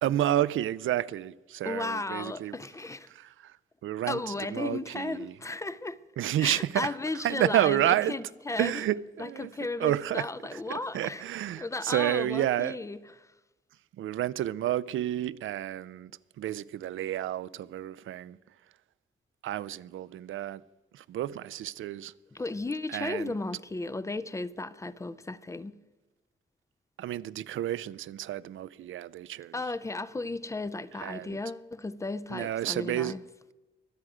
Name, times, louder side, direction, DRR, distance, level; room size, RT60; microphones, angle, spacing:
voice 1, 0.0-2.6 3.1-3.6 3.8-5.4 6.2-8.2 8.6-12.8 14.0-16.1 16.4-18.4 19.4-20.6 20.9-22.1 22.9-23.3 27.0-29.6 30.9-31.4 32.3-33.2, right 12 dB, 90° right, 0.4 m, -30 dB
voice 2, 1.6-3.1 4.1-6.0 6.4-8.8 9.2-11.2 11.6-13.0 22.3-25.8 29.5-33.2, left 2 dB, 15° left, 0.4 m, -35 dB
22.5 x 7.8 x 4.9 m
wide cardioid pair, 175°, 20 cm